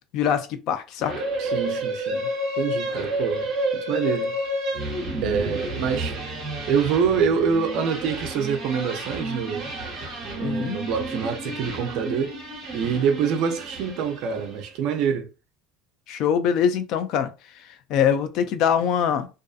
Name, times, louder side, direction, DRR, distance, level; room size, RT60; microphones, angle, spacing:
voice 1, 0.1-1.1 10.4-10.8 16.1-17.3 17.7-19.3, left 8 dB, 45° left, 0.3 m, -23 dB
sound 1, 1.0-14.6, right 1 dB, 30° right, 0.9 m, -30 dB
voice 2, 1.4-2.3 2.6-3.5 3.9-4.4 5.2-6.2 6.7-9.7 10.4-12.3 12.7-15.3, right 6 dB, 50° right, 0.5 m, -25 dB
2.5 x 2.4 x 2.3 m
cardioid pair, 170°, 0 cm